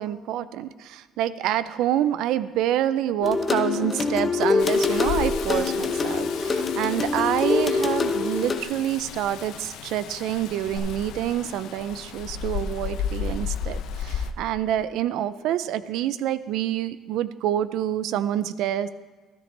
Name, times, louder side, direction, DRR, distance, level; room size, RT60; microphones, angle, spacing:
voice 1, 0.0-18.9, right 11 dB, 70° right, 15 dB, 0.5 m, -27 dB
sound 1, 3.2-8.6, left 4 dB, 25° left, 0.7 m, -24 dB
Rain, 4.6-14.3, left 7 dB, 65° left, 0.6 m, -34 dB
sound 2, 5.5-6.0 6.3-6.5 6.8-6.9 7.2-7.3 10.7-10.8, left 2 dB, 5° right, 2.7 m, -39 dB
13.5 x 13.0 x 3.3 m, 1.3 s
cardioid pair, 165°, 0 cm